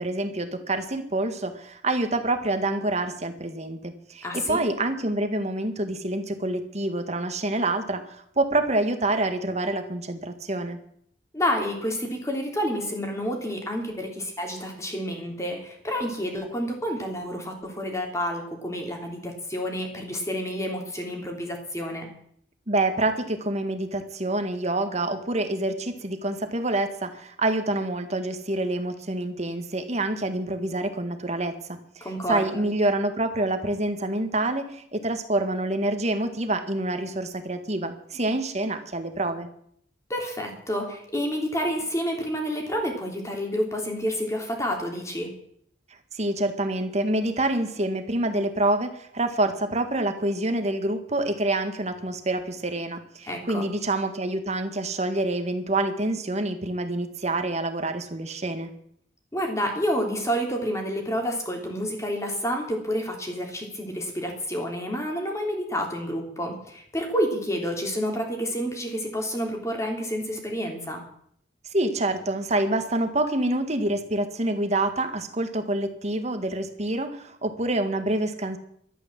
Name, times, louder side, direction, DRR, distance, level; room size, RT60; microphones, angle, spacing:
voice 1, 0.0-10.8 22.7-39.5 46.1-58.7 71.7-78.6, right 2 dB, 40° right, 8 dB, 1.8 m, -27 dB
voice 2, 4.2-4.6 11.3-22.1 32.0-32.6 40.1-45.3 53.2-53.7 59.3-71.0, equal, 15° left, 2 dB, 3.4 m, -29 dB
13.0 x 12.0 x 7.6 m, 0.67 s
head